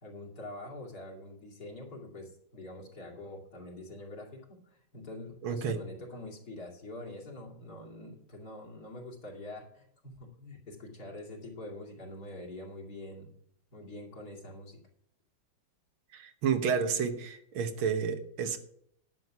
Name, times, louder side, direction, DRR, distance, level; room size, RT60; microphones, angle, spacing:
voice 1, 0.0-13.3 13.7-14.8, left 1 dB, 50° left, -1 dB, 3.2 m, -45 dB
voice 2, 5.4-5.8 16.1-18.6, right 6 dB, 80° right, 8 dB, 1.9 m, -30 dB
11.0 x 7.7 x 5.9 m, 0.68 s
omnidirectional pair, 2.2 m